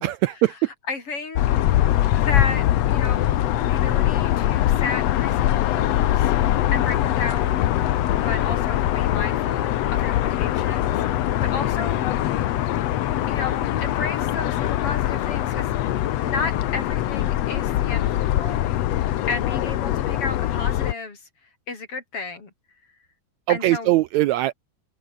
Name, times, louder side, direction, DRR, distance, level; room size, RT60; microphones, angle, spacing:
voice 1, 0.0-0.7 23.5-24.5, right 16 dB, 75° right, 1.8 m, -21 dB
voice 2, 0.9-1.4 2.1-3.4 3.7-6.3 6.7-7.7 8.2-11.0 11.4-12.1 13.3-15.8 16.2-18.7 19.3-21.2 21.7-22.5 23.5-24.0, left 4 dB, 45° left, 5.3 m, -33 dB
sound 1, 1.4-20.9, left 13 dB, 65° left, 1.9 m, -22 dB
omnidirectional pair, 3.6 m